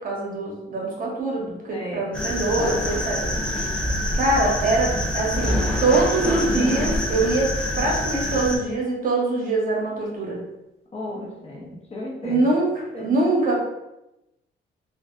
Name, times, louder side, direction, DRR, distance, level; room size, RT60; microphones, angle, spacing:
voice 1, 0.0-3.3 4.1-10.4 12.2-13.6, right 2 dB, 45° right, -2 dB, 1.0 m, -23 dB
voice 2, 1.7-2.0 10.9-12.5 12.9-13.1, left 1 dB, 30° left, -3 dB, 0.9 m, -34 dB
sound 1, 2.1-8.6, left 1 dB, 5° left, 0.6 m, -25 dB
3.3 x 2.4 x 2.4 m, 0.92 s
cardioid pair, 90°, 20 cm